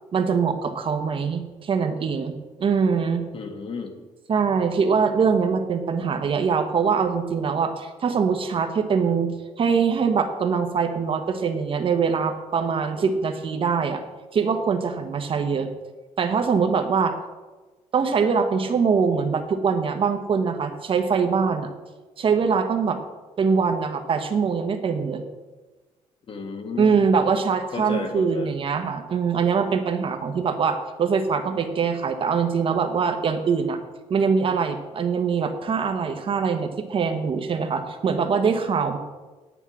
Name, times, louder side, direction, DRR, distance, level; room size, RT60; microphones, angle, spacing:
voice 1, 0.1-3.2 4.3-9.3 9.6-14.0 14.3-15.7 16.2-17.1 17.9-21.7 22.2-23.0 23.4-25.2 26.8-33.8 34.1-39.0, right 5 dB, 45° right, 6 dB, 1.2 m, -23 dB
voice 2, 3.3-3.9 26.3-27.0 27.7-28.5, left 4 dB, 45° left, 5 dB, 1.6 m, -32 dB
9.9 x 9.1 x 6.1 m, 1.2 s
cardioid pair, 140°, 13 cm